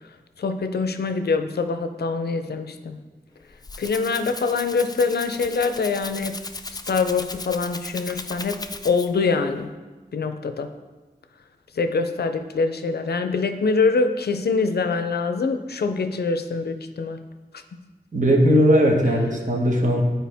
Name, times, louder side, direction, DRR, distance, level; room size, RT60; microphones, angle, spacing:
voice 1, 0.4-3.0 3.8-6.4 6.7-9.7 10.1-10.7 11.8-17.2, left 4 dB, 90° left, 8 dB, 0.5 m, -24 dB
Rattle (instrument), 3.4-9.3, left 3 dB, 25° left, 0.4 m, -37 dB
voice 2, 18.1-20.0, equal, 50° right, -1 dB, 1.3 m, -18 dB
9.1 x 4.5 x 3.4 m, 1.3 s
wide cardioid pair, 50°, 16 cm